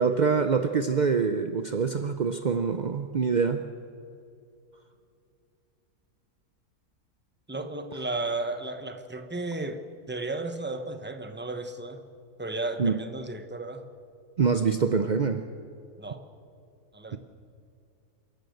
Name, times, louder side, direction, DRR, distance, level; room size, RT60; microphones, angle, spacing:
voice 1, 0.0-3.6 12.8-13.0 14.4-15.4, right 5 dB, 55° right, 8 dB, 0.5 m, -25 dB
voice 2, 7.5-12.0 12.4-13.9 16.0-16.2 16.9-17.2, right 2 dB, 10° right, 8 dB, 0.9 m, -34 dB
27.5 x 12.0 x 8.0 m, 2.5 s
omnidirectional pair, 1.7 m